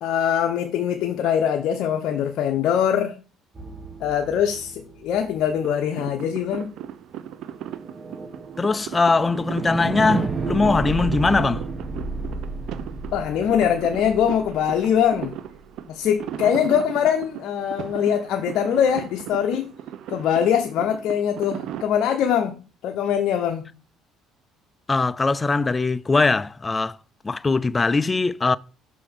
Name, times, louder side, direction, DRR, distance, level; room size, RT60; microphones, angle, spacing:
voice 1, 0.0-3.2 4.0-6.7 13.1-15.4 15.9-19.7 20.1-23.7, left 8 dB, 65° left, 0.9 m, -22 dB
sound 1, 3.5-5.7 7.5-15.6, right 3 dB, 25° right, 1.2 m, -32 dB
sound 2, 5.6-21.9, right 10 dB, 65° right, 0.7 m, -37 dB
voice 2, 8.6-11.6 24.9-27.0 27.2-28.6, left 3 dB, 20° left, 0.4 m, -21 dB
6.0 x 4.9 x 5.8 m
cardioid pair, 105°, 0 cm